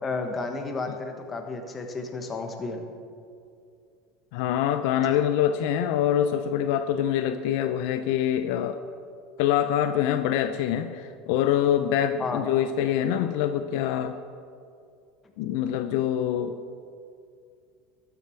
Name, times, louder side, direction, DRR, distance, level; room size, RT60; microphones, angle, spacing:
voice 1, 0.0-2.8 12.2-12.5, left 3 dB, 25° left, 5 dB, 1.2 m, -32 dB
voice 2, 4.3-8.8 9.4-14.2 15.4-16.6, left 10 dB, 75° left, 10 dB, 0.4 m, -25 dB
13.0 x 6.9 x 4.5 m, 2.3 s
supercardioid pair, 115°, 0 cm